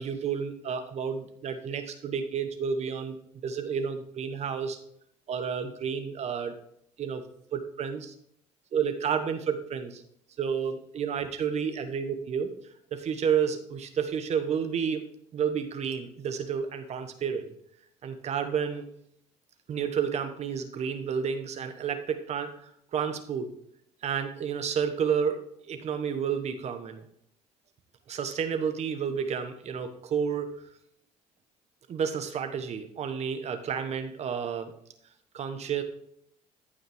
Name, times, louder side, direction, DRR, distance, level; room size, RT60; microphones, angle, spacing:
voice 1, 0.0-3.2 3.4-4.8 5.3-6.5 7.0-7.2 7.5-8.1 8.7-10.0 10.4-12.5 12.9-15.0 15.3-17.5 18.0-18.8 19.7-23.5 24.0-25.4 25.7-27.0 28.1-30.6 31.9-34.7 35.3-35.8, right 7 dB, 50° right, 8 dB, 1.2 m, -30 dB
14.0 x 5.5 x 3.5 m, 0.68 s
supercardioid pair, 90°, 14 cm